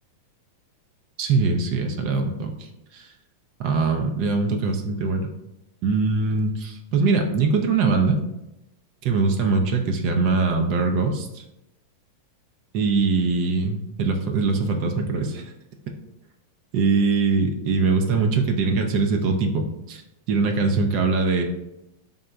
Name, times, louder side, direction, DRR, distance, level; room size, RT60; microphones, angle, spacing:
voice 1, 1.2-3.1 3.6-5.3 5.8-8.2 9.0-11.4 12.7-15.5 16.7-20.0 20.3-21.4, right 4 dB, 50° right, 4 dB, 0.5 m, -22 dB
3.7 x 2.2 x 3.9 m, 0.90 s
hypercardioid pair, 110°, 0 cm